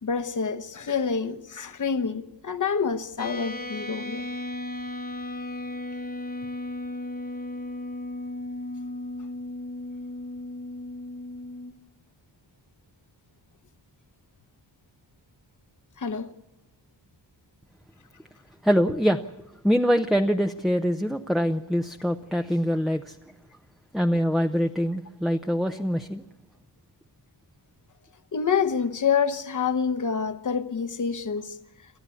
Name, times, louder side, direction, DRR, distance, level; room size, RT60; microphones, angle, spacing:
voice 1, 0.0-4.2 16.0-16.3 28.3-31.6, left 6 dB, 45° left, 1.1 m, -27 dB
sound 1, 3.2-11.7, left 1 dB, 20° left, 1.2 m, -35 dB
voice 2, 18.6-19.2 19.6-23.2 23.9-26.2, equal, ahead, 0.7 m, -24 dB
28.0 x 14.0 x 8.5 m
wide cardioid pair, 120°, 42 cm